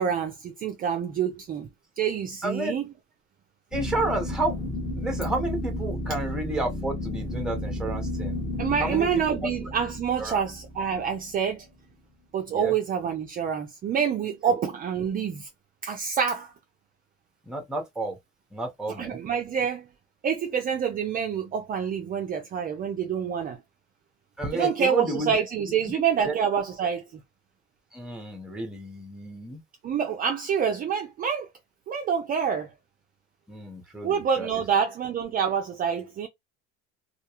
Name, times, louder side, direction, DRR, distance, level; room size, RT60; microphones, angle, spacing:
voice 1, 0.0-1.7 2.0-2.8 8.6-11.7 12.3-15.5 15.8-16.5 19.0-19.9 20.2-23.6 24.5-27.0 29.8-31.5 31.9-32.7 34.0-36.3, right 7 dB, 30° right, 0.4 m, -27 dB
voice 2, 2.4-2.7 3.7-4.6 5.0-8.4 8.8-9.3 10.2-10.4 12.5-12.7 14.5-14.6 17.5-18.2 18.5-19.2 24.4-25.4 25.9-26.3 27.9-29.6 33.5-34.5, right 2 dB, ahead, 0.8 m, -31 dB
sound 1, 3.7-11.6, left 1 dB, 15° left, 1.1 m, -33 dB
2.4 x 2.2 x 2.8 m
supercardioid pair, 115°, 29 cm